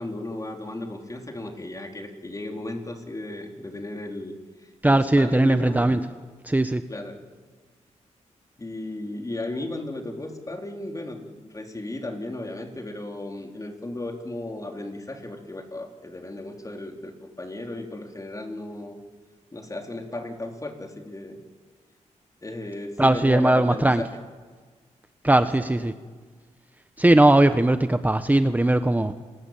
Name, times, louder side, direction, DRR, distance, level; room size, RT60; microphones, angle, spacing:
voice 1, 0.0-5.9 6.9-7.2 8.6-19.0 19.5-21.4 22.4-24.1 25.2-25.5 25.8-25.9, left 2 dB, 25° left, 3 dB, 4.1 m, -35 dB
voice 2, 4.8-6.0 6.4-6.8 23.0-24.0 25.2-25.9 27.0-29.1, right 1 dB, 15° right, 9 dB, 1.2 m, -19 dB
29.0 x 19.5 x 9.2 m, 1.5 s
cardioid pair, 65°, 13 cm